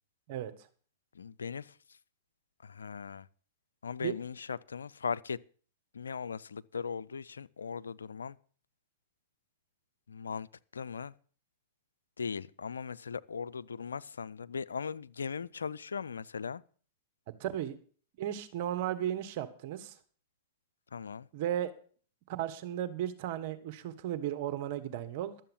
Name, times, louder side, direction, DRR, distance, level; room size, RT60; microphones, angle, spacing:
voice 1, 1.1-1.8 2.6-3.3 3.8-5.4 5.9-8.4 10.1-10.5 10.7-11.1 12.2-16.6 20.9-21.3, left 6 dB, 85° left, 0.5 m, -38 dB
voice 2, 17.4-17.8 18.2-20.0 21.3-21.7 22.3-25.3, right 11 dB, 55° right, 1.4 m, -35 dB
12.5 x 7.7 x 7.1 m
hypercardioid pair, 110°, 0 cm